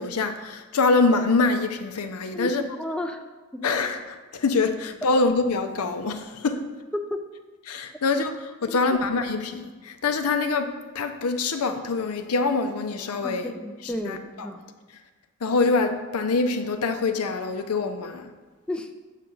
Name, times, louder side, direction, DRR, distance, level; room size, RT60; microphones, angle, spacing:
voice 1, 0.0-2.6 3.6-6.6 7.7-13.5 14.1-14.5 15.4-18.3, left 3 dB, 85° left, 0.6 m, -25 dB
voice 2, 2.3-3.2 3.5-3.7 6.9-7.2 8.7-8.8 13.2-14.6 18.7-18.9, left 1 dB, 5° left, 0.4 m, -32 dB
7.3 x 5.7 x 3.8 m
head